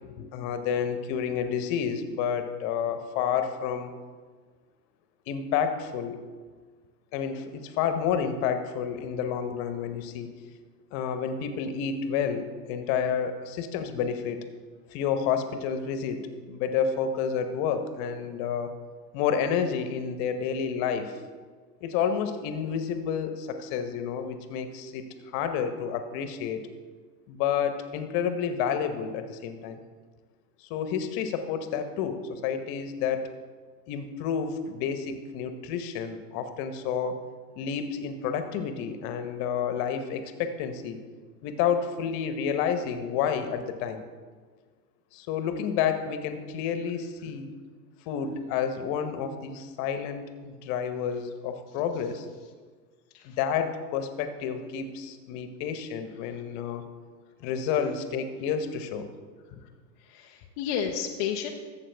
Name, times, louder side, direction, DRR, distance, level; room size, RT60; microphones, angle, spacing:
voice 1, 0.0-3.9 5.3-6.2 7.1-10.3 10.9-14.4 14.9-18.7 19.1-21.2 21.8-26.7 27.3-29.8 30.6-33.3 33.9-37.2 37.6-41.0 41.4-44.0 45.1-47.5 48.1-52.3 53.2-56.9 57.4-59.1 59.5-59.6, left 7 dB, 40° left, 8 dB, 1.0 m, -30 dB
voice 2, 60.0-61.5, left 8 dB, 25° left, 1 dB, 0.3 m, -32 dB
12.5 x 7.4 x 3.4 m, 1.5 s
hypercardioid pair, 115°, 50 cm